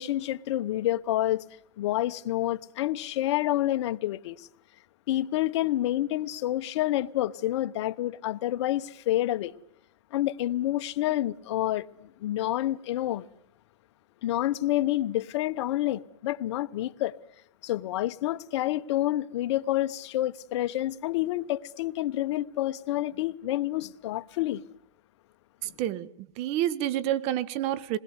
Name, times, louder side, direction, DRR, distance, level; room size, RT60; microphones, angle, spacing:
voice 1, 0.0-1.4 1.8-4.5 5.1-9.5 10.1-13.2 14.2-17.1 17.6-24.6, left 14 dB, 60° left, 1.1 m, -28 dB
voice 2, 25.6-28.0, right 12 dB, 40° right, 1.3 m, -29 dB
27.0 x 20.5 x 8.1 m
hypercardioid pair, 140°, 17 cm